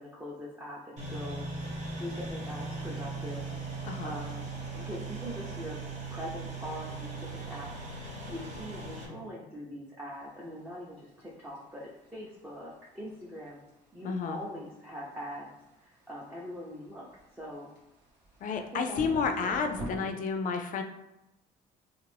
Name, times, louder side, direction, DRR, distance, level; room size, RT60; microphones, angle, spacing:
voice 1, 0.0-1.7 2.0-5.8 6.1-13.6 13.9-15.5 15.8-17.1 17.3-17.7 18.6-19.0 19.4-20.1, equal, 10° right, -6 dB, 0.6 m, -42 dB
sound 1, 1.0-9.1, right 3 dB, 45° right, 1.0 m, -39 dB
voice 2, 3.8-4.1 14.0-14.4 18.4-20.8, left 5 dB, 50° left, 5 dB, 0.4 m, -31 dB
sound 2, 10.2-20.0, right 1 dB, 85° right, 1.1 m, -47 dB
2.5 x 2.5 x 3.3 m, 0.92 s
cardioid pair, 110°, 17 cm